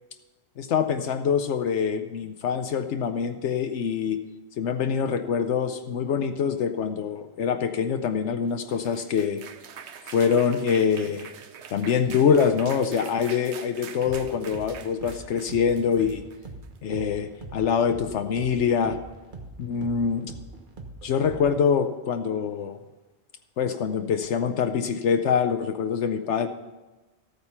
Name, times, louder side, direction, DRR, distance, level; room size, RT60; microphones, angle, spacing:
voice 1, 0.6-4.2 4.6-9.4 10.1-11.3 11.7-16.2 16.8-19.0 19.6-20.3 21.0-22.8 23.6-26.5, left 7 dB, 80° left, 8 dB, 1.0 m, -25 dB
sound 1, 8.5-16.8, right 7 dB, 70° right, 1.1 m, -44 dB
sound 2, 14.1-21.7, right 2 dB, 45° right, 1.4 m, -43 dB
14.0 x 9.1 x 5.6 m, 1.1 s
omnidirectional pair, 1.2 m